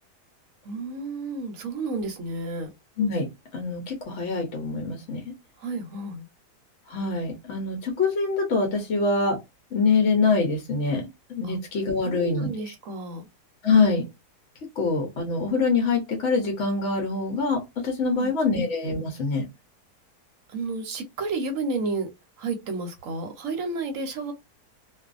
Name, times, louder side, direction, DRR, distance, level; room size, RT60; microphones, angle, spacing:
voice 1, 0.6-2.7 5.6-6.3 11.4-11.6 12.0-13.3 18.1-18.6 20.5-22.1 22.4-24.3, right 3 dB, 60° right, 1.0 m, -31 dB
voice 2, 3.5-5.2 6.9-9.4 9.7-11.0 11.3-12.5 13.6-14.0 14.8-19.4, left 4 dB, 55° left, 0.9 m, -24 dB
2.6 x 2.4 x 2.4 m
omnidirectional pair, 1.8 m